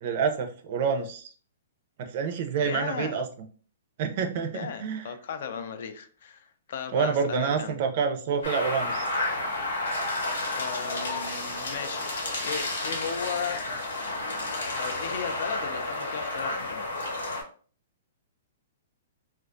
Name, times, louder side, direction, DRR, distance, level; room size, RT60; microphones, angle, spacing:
voice 1, 0.0-1.3 2.0-3.3 4.0-5.1 6.9-9.1, right 6 dB, 45° right, 5 dB, 0.4 m, -28 dB
voice 2, 2.6-3.2 4.5-7.7 10.5-13.6 14.5-16.9, left 7 dB, 60° left, 9 dB, 0.3 m, -36 dB
sound 1, 8.4-17.4, left 2 dB, 85° left, 0.8 m, -31 dB
2.3 x 2.2 x 2.5 m, 0.42 s
hypercardioid pair, 160°, 0 cm